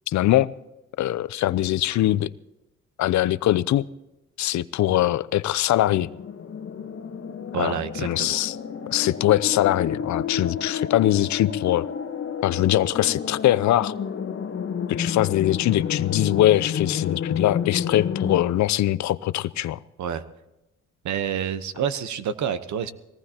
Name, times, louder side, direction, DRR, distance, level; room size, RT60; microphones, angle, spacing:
voice 1, 0.1-0.5 1.0-2.3 3.0-3.9 4.4-6.1 7.6-8.6 8.9-11.9 12.4-13.9 14.9-19.8, left 14 dB, 70° left, 0.6 m, -22 dB
sound 1, 5.9-18.4, left 7 dB, 45° left, 1.2 m, -30 dB
voice 2, 7.5-8.4 20.0-20.2 21.0-22.9, right 8 dB, 70° right, 1.1 m, -28 dB
21.5 x 18.0 x 2.9 m
cardioid pair, 90°, 30 cm